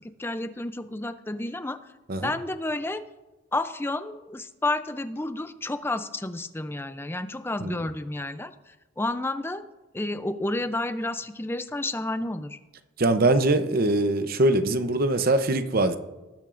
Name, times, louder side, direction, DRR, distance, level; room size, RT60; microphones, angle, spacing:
voice 1, 0.0-1.8 2.2-3.0 3.5-9.6 9.9-12.6, left 2 dB, 10° left, 10 dB, 0.4 m, -31 dB
voice 2, 13.0-16.0, right 2 dB, 45° right, 9 dB, 0.7 m, -22 dB
19.0 x 8.8 x 2.5 m, 1.1 s
head